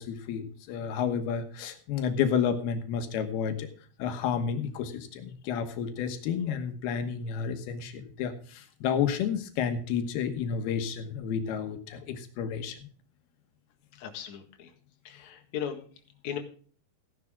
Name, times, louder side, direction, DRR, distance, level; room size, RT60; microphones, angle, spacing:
voice 1, 0.0-3.7 4.0-12.9, left 7 dB, 85° left, 8 dB, 3.2 m, -31 dB
voice 2, 13.9-14.7 15.0-15.8 16.2-16.4, left 9 dB, 55° left, 4 dB, 2.8 m, -37 dB
15.5 x 11.0 x 3.6 m, 0.44 s
omnidirectional pair, 4.4 m